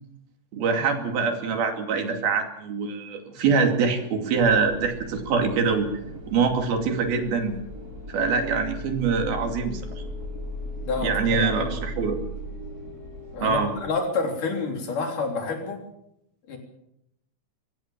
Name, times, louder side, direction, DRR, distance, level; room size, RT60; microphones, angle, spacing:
voice 1, 0.5-5.9 6.3-7.5 8.1-9.8 11.0-12.2 13.4-13.7, right 5 dB, 85° right, 5 dB, 4.5 m, -24 dB
sound 1, 4.4-13.9, left 1 dB, 25° right, 4.2 m, -37 dB
voice 2, 10.8-11.7 13.3-15.8 16.5-16.6, left 4 dB, 60° left, 3 dB, 5.1 m, -28 dB
23.5 x 16.5 x 7.5 m, 0.80 s
omnidirectional pair, 4.2 m